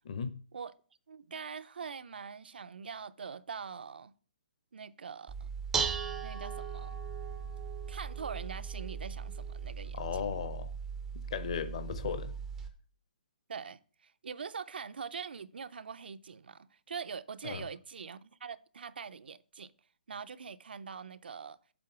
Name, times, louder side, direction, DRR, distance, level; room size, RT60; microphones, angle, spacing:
voice 1, 0.0-0.4 9.9-10.7 11.1-12.3 17.4-17.6, left 7 dB, 40° left, 0.7 m, -36 dB
voice 2, 1.1-4.1 4.7-5.5 6.2-7.0 7.9-10.2 13.5-19.7 20.1-21.6, right 6 dB, 80° right, 0.5 m, -43 dB
Dishes pots and pans, 5.3-12.7, right 6 dB, 5° right, 0.4 m, -38 dB
7.7 x 3.8 x 6.0 m
hypercardioid pair, 175°, 5 cm